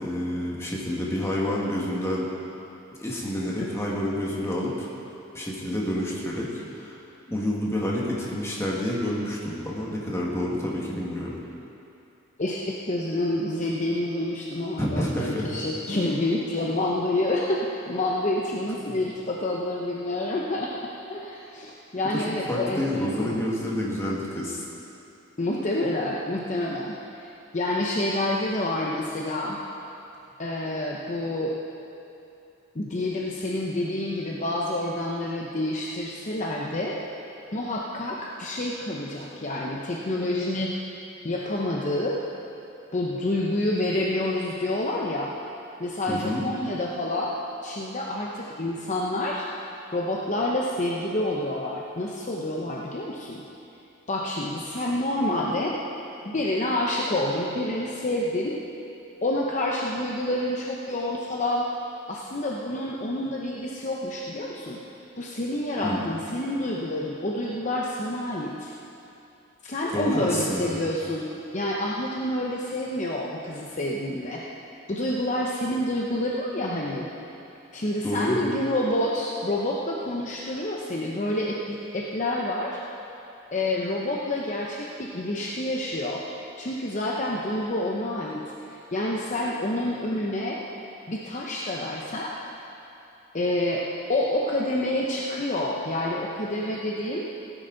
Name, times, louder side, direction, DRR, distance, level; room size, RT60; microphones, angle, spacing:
voice 1, 0.0-2.3 3.0-4.9 5.3-7.0 7.3-11.4 14.8-15.6 18.9-19.0 22.1-24.6 46.1-46.4 65.8-66.0 69.9-70.8 78.0-78.4, left 1 dB, 15° left, -4 dB, 1.8 m, -28 dB
voice 2, 12.4-20.7 21.1-23.4 25.4-29.6 30.4-31.5 32.7-37.0 37.5-40.8 41.2-42.2 42.9-45.3 45.8-47.3 47.6-49.4 49.9-53.5 54.1-55.7 56.2-58.6 59.2-61.7 62.1-64.8 65.2-68.7 69.6-71.3 71.5-74.4 74.9-77.1 77.7-82.8 83.5-86.2 86.6-88.4 88.7-90.6 91.1-92.3 93.3-97.3, left 1 dB, 35° left, -3 dB, 0.8 m, -28 dB
17.0 x 10.0 x 4.0 m, 2.8 s
head